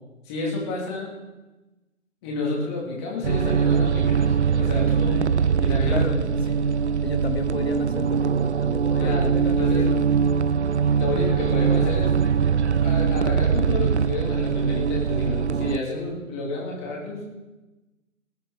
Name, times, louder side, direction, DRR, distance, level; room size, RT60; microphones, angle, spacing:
voice 1, 0.2-1.1 2.2-6.0 9.0-9.3 9.6-9.8 11.0-12.1 12.8-17.2, left 3 dB, 20° left, -3 dB, 3.0 m, -30 dB
sound 1, 3.2-15.8, right 6 dB, 55° right, 0.5 m, -22 dB
voice 2, 5.9-10.4 10.7-10.9, left 4 dB, 45° left, 7 dB, 1.7 m, -33 dB
19.0 x 8.9 x 5.1 m, 1.1 s
figure-of-eight pair, 145°, 42 cm